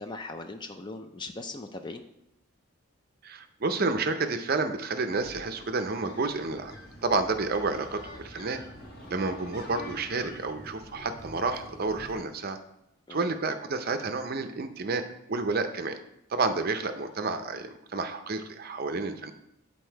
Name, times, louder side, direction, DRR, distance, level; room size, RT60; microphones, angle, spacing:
voice 1, 0.0-2.0 13.1-13.3, left 2 dB, 20° left, 7 dB, 0.4 m, -39 dB
voice 2, 3.2-6.8 7.0-8.6 9.1-12.6 13.1-16.0 16.3-19.3, right 3 dB, 45° right, 8 dB, 0.5 m, -30 dB
sound 1, 4.8-12.2, left 1 dB, 50° left, 1.2 m, -49 dB
sound 2, 6.6-12.1, right 1 dB, 5° left, 1.5 m, -48 dB
8.4 x 4.2 x 4.5 m, 0.82 s
head